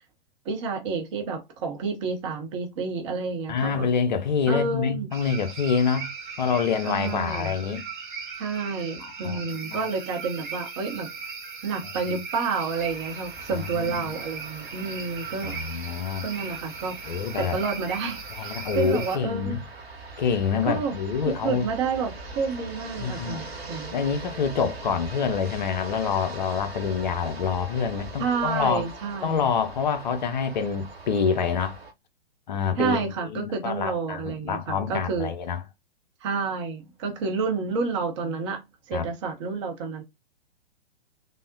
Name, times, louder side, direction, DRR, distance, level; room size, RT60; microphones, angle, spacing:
voice 1, 0.4-3.9 4.5-5.1 6.8-7.5 8.4-11.1 11.6-15.6 16.2-16.9 17.4-19.6 20.6-21.0 21.2-24.0 28.2-29.5 32.8-35.3 36.2-38.6 38.9-40.0, right 4 dB, 30° right, 0.7 m, -29 dB
voice 2, 3.5-6.1 6.4-7.9 9.0-9.9 13.5-14.2 15.4-16.2 17.1-17.6 18.3-19.6 20.2-21.7 23.0-23.4 23.9-28.8 29.2-31.8 32.5-35.6 38.9-39.1, left 6 dB, 50° left, 0.5 m, -27 dB
sound 1, 5.1-19.2, right 5 dB, 55° right, 1.0 m, -38 dB
sound 2, 12.6-31.9, right 3 dB, 85° right, 0.9 m, -42 dB
3.4 x 2.1 x 2.5 m
figure-of-eight pair, 115°, 30 cm